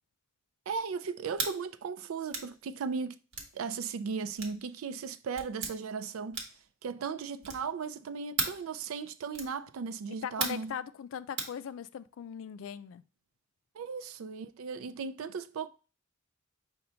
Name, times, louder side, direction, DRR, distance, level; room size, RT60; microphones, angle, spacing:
voice 1, 0.7-3.2 3.5-6.4 6.8-10.8 13.7-15.7, right 5 dB, 90° right, 0.4 m, -36 dB
sound 1, 1.3-1.6 2.3-2.5 3.3-3.5 4.4-4.6 5.4-5.7 6.3-6.7 7.4-7.7 8.4-8.6 9.3-9.6 10.4-10.7 11.4-11.6, right 4 dB, 65° right, 1.0 m, -35 dB
voice 2, 10.2-13.0, left 8 dB, 70° left, 0.3 m, -39 dB
5.5 x 2.2 x 3.9 m
head